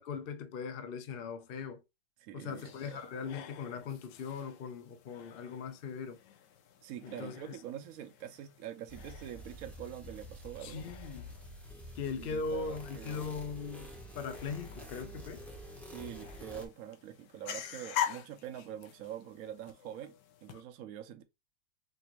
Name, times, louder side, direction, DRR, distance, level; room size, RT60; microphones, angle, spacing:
voice 1, 0.0-1.8 2.3-6.2 7.0-7.5 10.6-11.3 12.0-15.5, left 5 dB, 65° left, 0.5 m, -40 dB
voice 2, 2.2-3.0 6.8-10.9 12.2-13.2 15.8-20.1 20.4-21.2, right 10 dB, 70° right, 0.9 m, -45 dB
sound 1, 2.5-20.6, left 9 dB, 90° left, 1.3 m, -46 dB
sound 2, 8.9-16.7, equal, ahead, 0.4 m, -48 dB
5.1 x 2.5 x 2.9 m
omnidirectional pair, 1.9 m